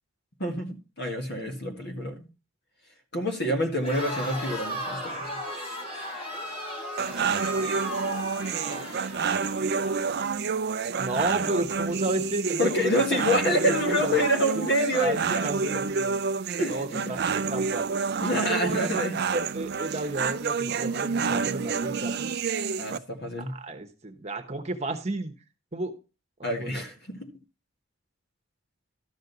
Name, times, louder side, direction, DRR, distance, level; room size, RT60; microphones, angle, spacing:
voice 1, 0.4-2.3 3.1-5.3 12.6-15.8 16.6-17.0 18.2-19.3 22.8-23.6 26.4-27.3, equal, 55° left, 1.9 m, -27 dB
Crowd, 3.8-10.0, equal, 30° left, 3.8 m, -36 dB
sound 1, 7.0-23.0, right 5 dB, 50° right, 0.4 m, -29 dB
voice 2, 11.0-13.2 13.4-14.2 14.5-14.7 15.0-16.2 16.6-17.9 18.6-18.8 19.3-22.3 23.5-25.3 25.7-25.9 26.6-26.8, right 2 dB, 30° right, 1.1 m, -32 dB
13.0 x 6.4 x 4.1 m
head